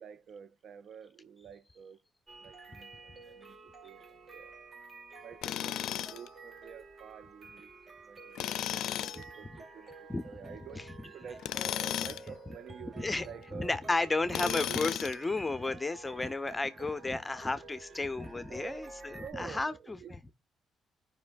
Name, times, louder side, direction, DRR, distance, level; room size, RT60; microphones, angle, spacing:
voice 1, 0.0-2.0 2.4-2.9 3.2-4.0 4.3-4.5 5.2-13.8 14.4-14.8 18.5-18.8 19.2-20.3, right 7 dB, 65° right, 0.5 m, -49 dB
sound 1, 2.3-19.3, right 3 dB, 40° right, 1.4 m, -51 dB
Tools, 5.4-6.3 8.4-9.2 11.4-12.3 14.3-15.2, left 12 dB, 85° left, 0.3 m, -34 dB
voice 2, 10.1-10.9 13.0-13.3 13.5-20.2, left 3 dB, 15° left, 0.6 m, -33 dB
14.0 x 5.3 x 2.4 m
cardioid pair, 90°, 0 cm